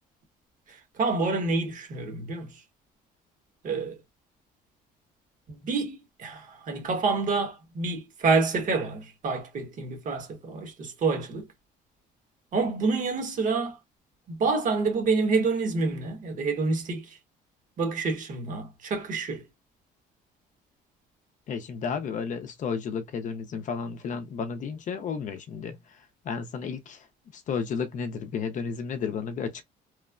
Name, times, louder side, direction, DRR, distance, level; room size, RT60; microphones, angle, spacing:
voice 1, 1.0-2.5 3.6-3.9 5.6-11.5 12.5-13.8 14.3-17.1 17.8-19.4, right 4 dB, 50° right, 1.1 m, -27 dB
voice 2, 21.5-25.8 26.3-27.0 27.3-29.6, left 6 dB, 50° left, 0.5 m, -32 dB
3.0 x 2.0 x 2.4 m
cardioid pair, 110°, 17 cm